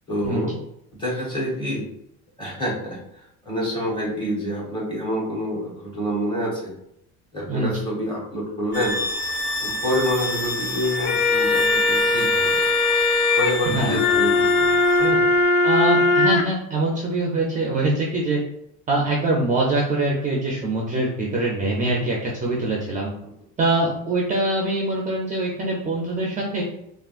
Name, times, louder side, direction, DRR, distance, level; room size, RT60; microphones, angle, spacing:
voice 1, 0.1-0.5 0.9-1.9 2.4-3.0 3.4-6.7 7.3-9.0 9.6-12.6 13.4-14.7 15.0-15.3, equal, 15° left, -4 dB, 1.1 m, -27 dB
sound 1, 8.7-15.1, left 2 dB, 30° left, 0.8 m, -28 dB
sound 2, 10.8-16.4, left 3 dB, 75° left, 0.5 m, -20 dB
voice 2, 13.7-14.2 15.6-18.4 18.9-23.1 23.6-26.6, right 2 dB, 25° right, -2 dB, 0.4 m, -23 dB
3.5 x 2.4 x 2.4 m, 0.76 s
cardioid pair, 145°, 33 cm